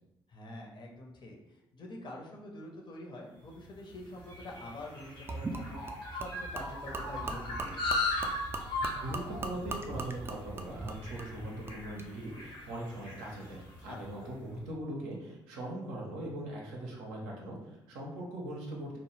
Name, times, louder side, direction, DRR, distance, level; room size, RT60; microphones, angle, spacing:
voice 1, 0.3-1.4 1.7-7.8 13.9-14.3, left 1 dB, 40° left, -1 dB, 0.6 m, -46 dB
sound 1, 3.6-14.2, left 2 dB, 90° left, 0.6 m, -38 dB
Gurgling / Liquid, 5.3-12.1, right 3 dB, 20° right, 0.4 m, -40 dB
voice 2, 9.0-19.0, right 1 dB, 75° right, -2 dB, 0.6 m, -40 dB
2.1 x 2.0 x 3.1 m, 0.90 s
figure-of-eight pair, 45°, 12 cm